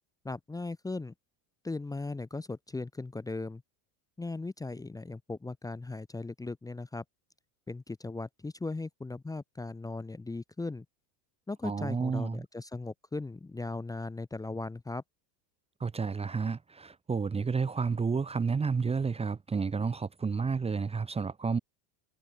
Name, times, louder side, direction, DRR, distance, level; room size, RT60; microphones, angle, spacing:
voice 1, 0.2-1.1 1.6-3.6 4.2-7.0 7.7-10.8 11.5-15.0, left 3 dB, 10° left, 1.2 m, -38 dB
voice 2, 11.6-12.4 15.8-21.6, right 5 dB, 15° right, 1.3 m, -31 dB
cardioid pair, 155°, 45 cm